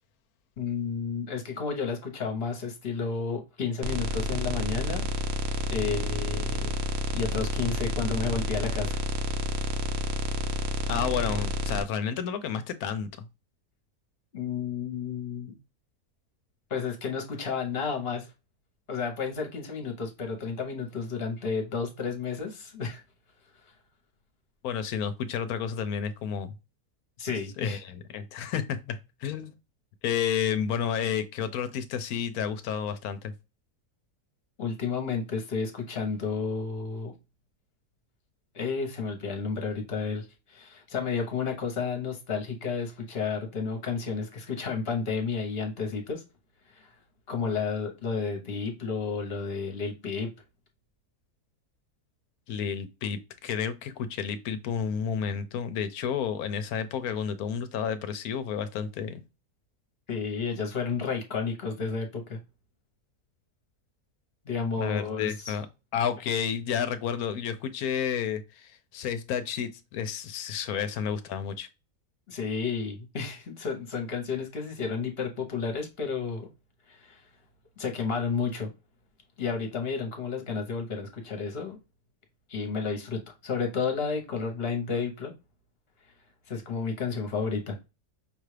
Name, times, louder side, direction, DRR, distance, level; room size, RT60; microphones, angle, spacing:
voice 1, 0.6-5.0 5.7-6.7 7.1-9.0 14.3-15.5 16.7-18.3 18.9-23.0 27.2-27.8 34.6-37.1 38.5-46.2 46.7-46.9 47.3-50.3 60.1-62.4 64.4-65.5 72.3-76.5 76.9-77.2 77.8-78.7 79.4-81.8 82.5-85.3 86.5-87.8, left 5 dB, 45° left, 1.1 m, -31 dB
sound 1, 3.8-11.8, equal, 60° right, 0.7 m, -30 dB
voice 2, 10.9-13.3 24.6-26.5 27.6-29.5 30.0-33.3 52.5-59.2 64.8-65.7 65.9-71.7, left 7 dB, 75° left, 1.1 m, -31 dB
5.6 x 2.4 x 3.2 m
omnidirectional pair, 1.6 m